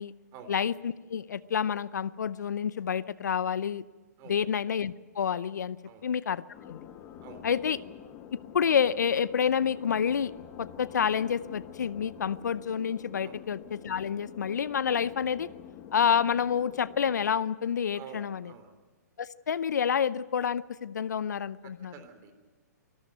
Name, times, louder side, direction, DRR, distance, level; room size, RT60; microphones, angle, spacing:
voice 1, 0.5-3.8 4.3-5.8 6.0-6.9 7.4-7.8 8.3-10.3 10.6-13.6 13.8-15.5 15.9-18.5 19.2-21.9, left 7 dB, 75° left, 18 dB, 0.7 m, -28 dB
sound 1, 6.5-17.3, left 9 dB, 30° left, 1.6 m, -47 dB
voice 2, 17.9-18.7 21.6-22.3, right 7 dB, 30° right, 7 dB, 3.6 m, -48 dB
24.5 x 13.5 x 9.3 m, 1.3 s
hypercardioid pair, 125°, 9 cm